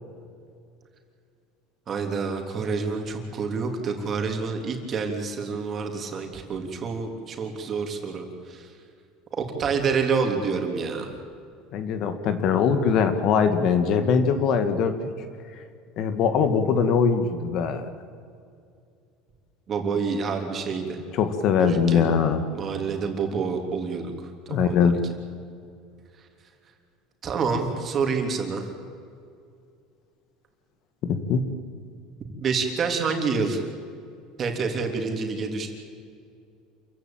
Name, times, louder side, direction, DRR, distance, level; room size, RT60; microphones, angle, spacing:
voice 1, 1.9-8.7 9.3-11.1 19.7-21.0 21.6-22.1 22.5-24.1 24.6-24.9 27.2-28.7 32.4-33.6 34.4-35.7, right 5 dB, 30° right, 3 dB, 3.5 m, -28 dB
voice 2, 11.7-15.0 16.0-17.9 21.1-22.5 24.5-25.0 31.0-31.4, left 6 dB, 45° left, 9 dB, 1.9 m, -22 dB
28.0 x 15.5 x 9.1 m, 2.4 s
cardioid pair, 150°, 0 cm